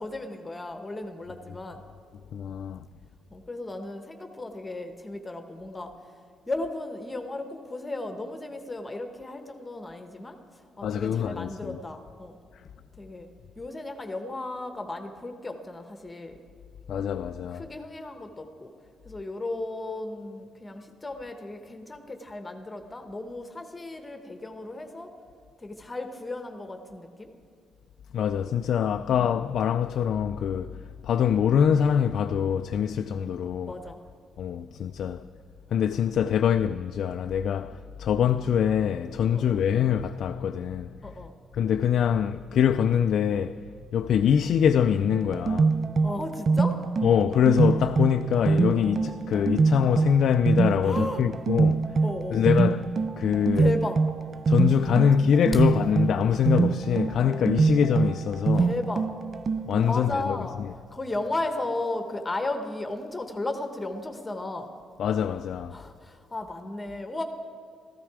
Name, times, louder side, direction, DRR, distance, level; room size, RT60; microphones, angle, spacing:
voice 1, 0.0-1.9 3.3-5.9 6.5-12.4 13.0-13.3 13.6-16.4 17.5-18.7 19.0-25.1 25.6-27.3 28.9-29.1 33.6-34.0 39.3-39.6 41.0-41.4 46.0-46.8 50.8-51.2 52.0-52.4 53.6-54.0 58.6-59.0 59.9-60.6 60.9-64.7 65.7-67.2, left 2 dB, 20° left, 1.1 m, -35 dB
voice 2, 2.3-2.8 10.8-11.8 16.9-17.7 28.1-33.7 34.4-35.3 35.7-41.0 41.5-43.6 43.9-45.8 47.0-52.0 52.3-52.9 53.2-53.7 54.5-58.7 59.7-60.7 65.0-65.8, left 8 dB, 65° left, 0.3 m, -24 dB
sound 1, 45.1-60.0, right 4 dB, 45° right, 0.5 m, -25 dB
14.5 x 13.0 x 4.8 m
cardioid pair, 90°, 0 cm